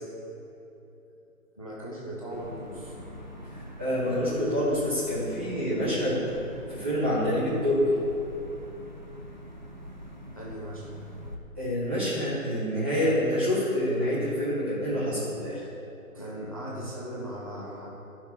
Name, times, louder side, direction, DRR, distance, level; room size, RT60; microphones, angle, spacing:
voice 1, 1.5-2.9 10.3-10.9 16.1-17.9, right 1 dB, 25° left, -5 dB, 0.6 m, -38 dB
sound 1, 2.3-11.4, equal, 30° right, 0.5 m, -44 dB
voice 2, 3.5-6.3 6.7-8.0 11.6-15.6, equal, 10° right, -13 dB, 0.9 m, -27 dB
12.5 x 5.9 x 4.3 m, 2.9 s
hypercardioid pair, 170°, 45 cm